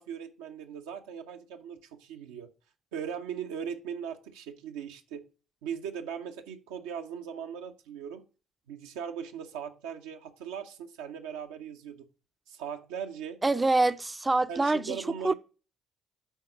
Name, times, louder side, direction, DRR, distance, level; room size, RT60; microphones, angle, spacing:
voice 1, 0.0-2.5 2.9-5.3 5.6-8.2 8.7-12.1 12.5-13.4 14.5-15.3, right 8 dB, 80° right, 0.7 m, -39 dB
voice 2, 13.4-15.0 15.2-15.3, right 2 dB, 20° right, 0.5 m, -25 dB
9.3 x 3.9 x 5.5 m
hypercardioid pair, 50°, 0 cm